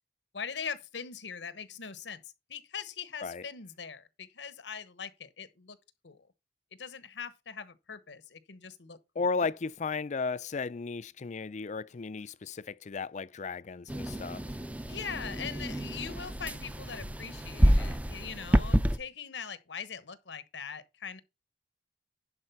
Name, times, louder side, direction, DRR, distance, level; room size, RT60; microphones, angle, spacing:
voice 1, 0.3-2.2 2.5-5.8 6.0-6.2 6.8-9.3 14.9-21.2, left 6 dB, 85° left, 1.1 m, -41 dB
voice 2, 9.2-14.4, left 4 dB, 45° left, 0.5 m, -34 dB
sound 1, 13.9-19.0, equal, 10° right, 0.5 m, -28 dB
11.0 x 4.3 x 5.7 m
head